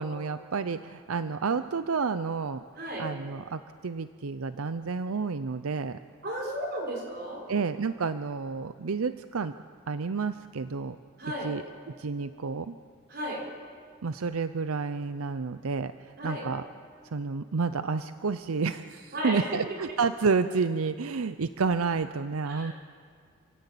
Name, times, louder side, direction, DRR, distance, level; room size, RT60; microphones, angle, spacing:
voice 1, 0.0-2.6 3.0-6.0 7.5-9.5 9.9-11.0 11.4-11.6 12.0-12.8 14.0-16.6 17.1-22.7, right 4 dB, 85° right, 11 dB, 0.6 m, -30 dB
voice 2, 2.8-3.1 6.2-7.4 11.2-11.5 13.1-13.4 16.2-16.5 19.1-19.8 22.5-22.7, equal, 45° right, -1 dB, 5.6 m, -34 dB
27.0 x 17.0 x 8.4 m, 2.1 s
head